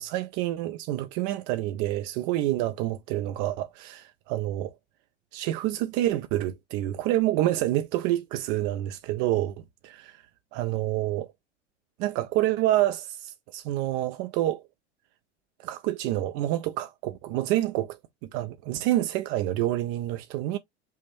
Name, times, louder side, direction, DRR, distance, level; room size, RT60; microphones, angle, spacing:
voice 1, 0.0-4.0 4.3-4.7 5.3-9.6 9.8-10.2 10.5-11.3 12.0-14.6 15.6-20.6, right 14 dB, 30° right, 0.4 m, -28 dB
5.5 x 2.7 x 3.0 m
figure-of-eight pair, 85°, 34 cm